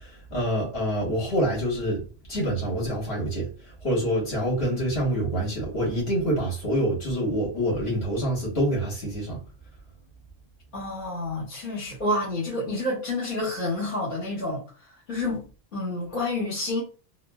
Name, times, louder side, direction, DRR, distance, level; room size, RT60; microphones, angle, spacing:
voice 1, 0.0-2.0 2.3-9.4, equal, 75° left, 1.8 m, -26 dB
voice 2, 10.7-15.4 15.7-16.8, left 2 dB, 60° left, 1.2 m, -29 dB
3.7 x 2.0 x 2.2 m
omnidirectional pair, 1.0 m